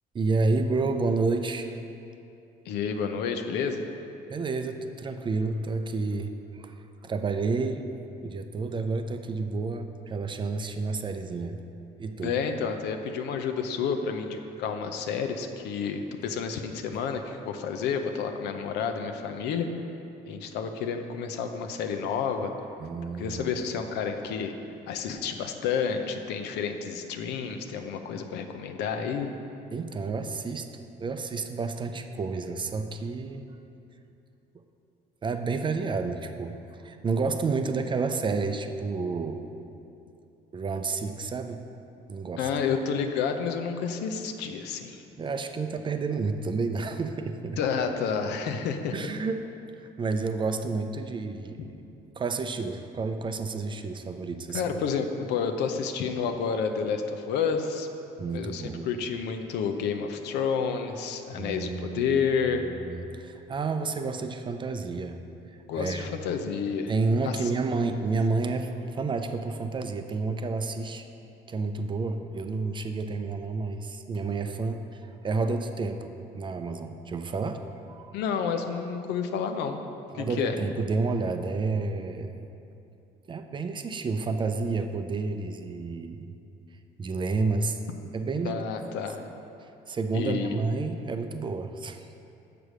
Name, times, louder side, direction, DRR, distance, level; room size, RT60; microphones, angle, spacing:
voice 1, 0.1-1.8 4.3-6.7 7.0-7.8 8.2-11.6 12.0-12.4 22.8-23.6 29.7-30.7 31.0-33.4 35.2-36.6 36.8-39.5 40.5-41.6 42.1-42.5 45.2-47.6 48.9-49.5 49.8-51.7 52.2-54.6 58.2-58.9 61.3-62.2 62.7-65.2 65.7-66.1 66.9-71.1 71.5-78.1 80.1-82.5 83.3-86.4 87.0-87.8 88.1-88.6 89.6-92.1, right 4 dB, 30° right, 7 dB, 0.5 m, -30 dB
voice 2, 2.7-3.9 12.2-19.7 20.3-22.5 23.2-24.5 24.9-29.3 42.4-45.0 47.6-48.9 54.5-57.9 58.3-62.6 65.7-66.9 67.2-67.5 78.1-79.8 80.1-80.5 88.4-89.2 90.1-90.6, left 6 dB, 85° left, 6 dB, 0.6 m, -30 dB
6.8 x 4.8 x 6.2 m, 2.7 s
cardioid pair, 110°, 17 cm